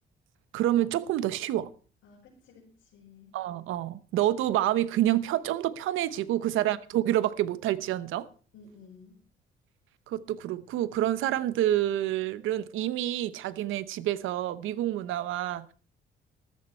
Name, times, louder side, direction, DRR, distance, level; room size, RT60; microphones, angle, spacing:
voice 1, 0.5-1.7 3.3-8.3 10.1-15.7, right 13 dB, 90° right, 1.0 m, -28 dB
voice 2, 2.0-3.4 6.5-6.6 8.5-9.2, left 4 dB, 80° left, 5.7 m, -54 dB
14.0 x 13.5 x 4.4 m
cardioid pair, 90°, 20 cm